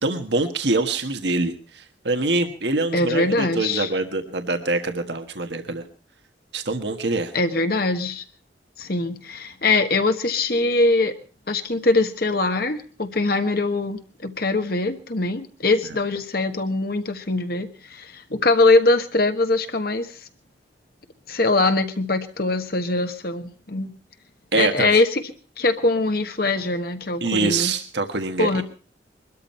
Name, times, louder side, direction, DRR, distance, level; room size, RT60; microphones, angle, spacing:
voice 1, 0.0-5.8 6.5-7.3 24.5-24.9 27.2-28.6, right 3 dB, 70° right, 6 dB, 1.4 m, -24 dB
voice 2, 2.9-3.9 7.3-8.2 8.8-11.1 11.5-20.2 21.3-23.9 24.5-25.2 25.6-27.7 28.4-28.6, left 2 dB, 55° left, 7 dB, 1.4 m, -22 dB
22.5 x 13.0 x 4.4 m, 0.38 s
head